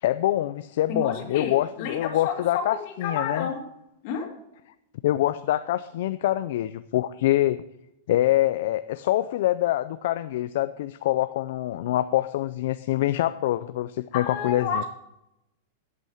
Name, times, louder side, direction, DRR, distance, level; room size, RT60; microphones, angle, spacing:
voice 1, 0.0-3.5 5.0-7.6 8.1-14.8, left 14 dB, 55° left, 11 dB, 0.4 m, -25 dB
voice 2, 0.9-2.6 3.0-3.6 4.0-4.3 14.1-14.8, left 6 dB, 35° left, 2 dB, 2.3 m, -30 dB
10.5 x 8.3 x 7.9 m, 0.85 s
supercardioid pair, 180°, 0 cm